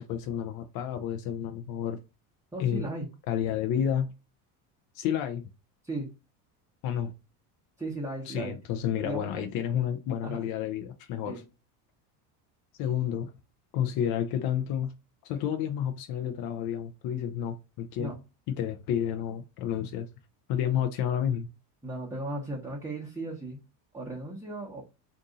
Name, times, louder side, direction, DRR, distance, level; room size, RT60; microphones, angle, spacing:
voice 1, 0.0-2.0 2.6-2.8 3.3-4.1 4.9-5.4 6.8-7.1 8.3-11.4 12.8-13.3 13.7-14.9 15.2-18.1 18.6-20.1 20.5-21.5, left 9 dB, 50° left, 0.5 m, -30 dB
voice 2, 2.5-3.1 5.8-6.1 7.8-8.6 9.0-9.5 10.2-10.5 11.3-11.4 18.0-18.2 21.8-23.6 23.9-24.8, right 2 dB, 5° right, 0.8 m, -36 dB
2.7 x 2.6 x 3.6 m
supercardioid pair, 100°, 48 cm